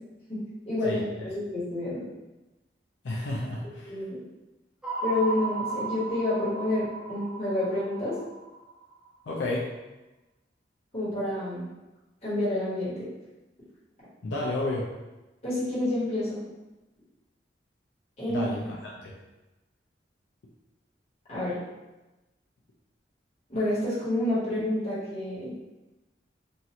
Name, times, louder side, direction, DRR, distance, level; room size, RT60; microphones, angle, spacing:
voice 1, 0.7-2.0 3.8-4.2 5.0-8.1 10.9-11.6 12.2-13.1 15.4-16.5 18.2-18.5 21.3-21.6 23.5-25.7, left 1 dB, 35° left, -10 dB, 1.3 m, -29 dB
voice 2, 3.0-4.0 9.3-9.7 14.2-14.9 18.3-19.2, left 2 dB, 85° left, -3 dB, 0.5 m, -31 dB
sound 1, 4.8-9.1, right 3 dB, 5° right, 0.5 m, -35 dB
3.0 x 2.5 x 2.8 m, 1.1 s
head